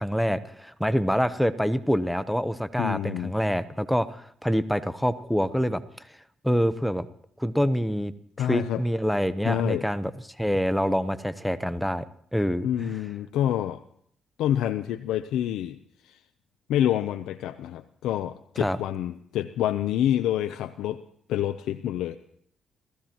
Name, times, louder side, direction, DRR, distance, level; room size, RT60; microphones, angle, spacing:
voice 1, 0.0-5.8 6.4-7.1 7.4-8.1 8.4-10.1 10.4-12.1 12.3-12.9 18.6-18.8, equal, ahead, 12 dB, 0.8 m, -26 dB
voice 2, 2.8-3.3 8.4-8.8 9.4-9.8 12.6-13.8 14.4-15.8 16.0-16.2 16.7-21.0 21.3-22.2, left 11 dB, 85° left, 8 dB, 0.6 m, -27 dB
29.5 x 15.5 x 3.0 m, 0.65 s
cardioid pair, 90°, 0 cm